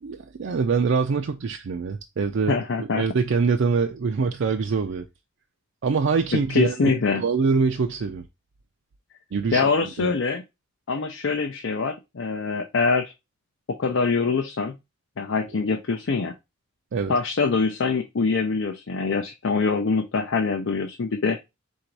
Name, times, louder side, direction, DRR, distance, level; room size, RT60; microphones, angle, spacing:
voice 1, 0.0-5.0 5.8-8.2 9.3-9.7 10.0-10.1 16.9-17.1, right 5 dB, 65° right, 0.4 m, -24 dB
voice 2, 2.5-3.0 6.5-7.2 9.5-10.4 10.9-13.1 13.7-14.8 15.2-16.3 17.1-21.4, left 4 dB, 65° left, 0.5 m, -24 dB
3.8 x 2.6 x 4.5 m
head